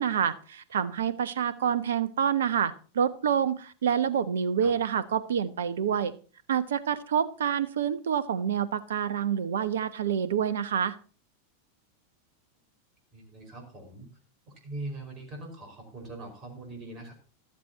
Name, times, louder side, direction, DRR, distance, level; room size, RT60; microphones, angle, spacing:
voice 1, 0.0-6.1 6.5-11.0, right 8 dB, 65° right, 16 dB, 0.9 m, -27 dB
voice 2, 13.1-14.1 14.5-17.1, right 2 dB, 30° right, 3 dB, 5.1 m, -41 dB
14.5 x 13.0 x 2.9 m, 0.38 s
figure-of-eight pair, 90°, 0 cm